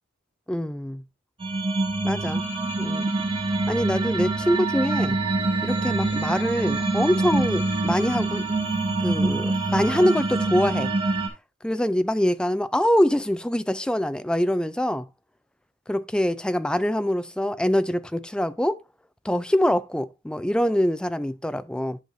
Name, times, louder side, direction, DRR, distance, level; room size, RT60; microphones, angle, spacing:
voice 1, 0.5-1.0 2.0-2.4 2.8-3.1 3.7-5.2 5.6-8.5 9.0-10.9 11.6-15.1 15.9-18.8 19.2-22.0, equal, 5° left, 0.3 m, -24 dB
sound 1, 1.4-11.3, right 2 dB, 25° right, 2.4 m, -25 dB
11.0 x 6.4 x 2.6 m
head